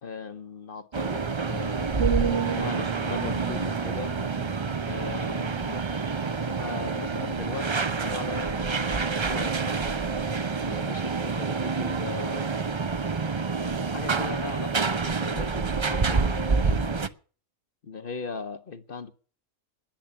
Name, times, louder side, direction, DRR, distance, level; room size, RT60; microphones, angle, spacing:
voice 1, 0.0-2.1 2.6-4.2 4.9-5.8 6.6-10.0 10.6-12.5 13.9-17.1 17.8-19.1, left 5 dB, 45° left, 1.2 m, -38 dB
sound 1, 0.9-17.1, right 4 dB, 35° right, 0.4 m, -28 dB
sound 2, 2.0-6.0 6.3-6.7, right 7 dB, 55° right, 1.2 m, -33 dB
10.5 x 10.0 x 10.0 m
omnidirectional pair, 1.4 m